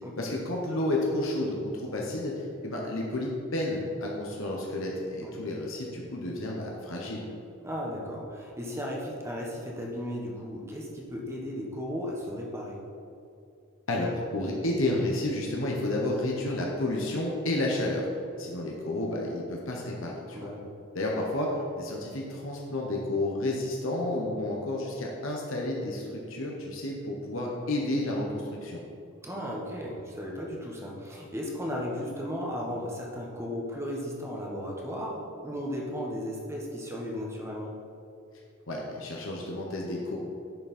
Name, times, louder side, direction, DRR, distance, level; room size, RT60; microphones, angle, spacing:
voice 1, 0.2-2.3 2.6-7.3 13.9-18.1 18.4-20.5 20.9-21.5 21.7-28.8 38.7-40.2, left 1 dB, 70° left, -2 dB, 1.2 m, -31 dB
voice 2, 7.6-12.8 20.3-20.6 29.2-37.7, equal, 15° right, -2 dB, 1.4 m, -35 dB
10.5 x 6.1 x 4.4 m, 2.5 s
head